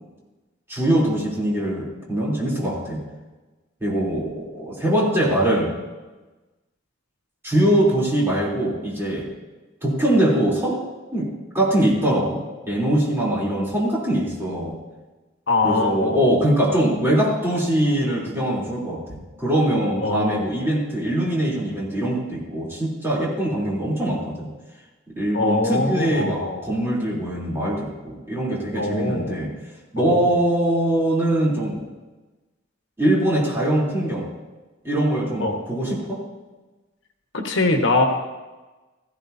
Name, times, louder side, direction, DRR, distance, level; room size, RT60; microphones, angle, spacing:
voice 1, 0.7-3.0 3.8-5.7 7.4-9.3 9.8-10.8 11.1-11.3 11.5-14.8 15.6-24.5 25.1-29.5 29.9-31.8 33.0-34.3 34.8-36.2, right 1 dB, 15° right, -5 dB, 3.4 m, -22 dB
voice 2, 15.5-16.3 20.0-20.5 25.3-26.6 28.7-29.3 30.0-30.4 35.4-35.6 37.3-38.1, left 2 dB, 70° left, 3 dB, 1.4 m, -23 dB
16.5 x 14.5 x 2.8 m, 1.2 s
head